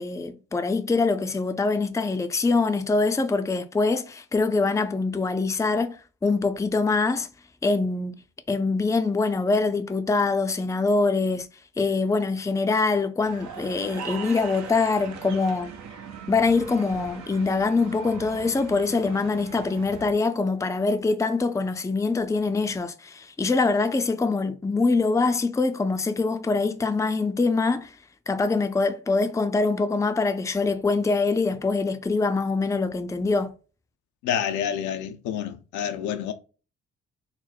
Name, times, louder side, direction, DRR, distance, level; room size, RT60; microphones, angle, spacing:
voice 1, 0.0-7.3 7.6-8.2 8.5-11.5 11.8-15.7 16.3-27.9 28.3-33.5, left 3 dB, 10° left, 0.5 m, -24 dB
sound 1, 13.2-20.1, right 6 dB, 60° right, 0.8 m, -40 dB
voice 2, 34.2-36.3, left 9 dB, 70° left, 0.5 m, -28 dB
4.1 x 2.0 x 4.1 m
hypercardioid pair, 45°, 31 cm